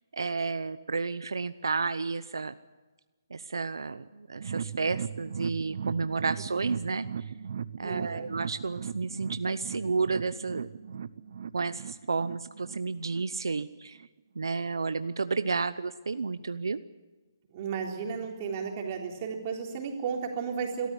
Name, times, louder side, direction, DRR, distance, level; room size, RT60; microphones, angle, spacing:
voice 1, 0.1-2.6 3.3-7.1 7.8-11.0 11.5-14.0 14.4-16.8, right 4 dB, 85° right, 13 dB, 0.8 m, -31 dB
sound 1, 4.4-13.6 14.0-14.1 14.5-14.6, right 7 dB, 55° right, 0.7 m, -38 dB
voice 2, 7.8-8.3 17.5-20.9, right 6 dB, 30° right, 1 dB, 3.7 m, -34 dB
23.0 x 13.5 x 9.9 m, 1.3 s
hypercardioid pair, 160°, 2 cm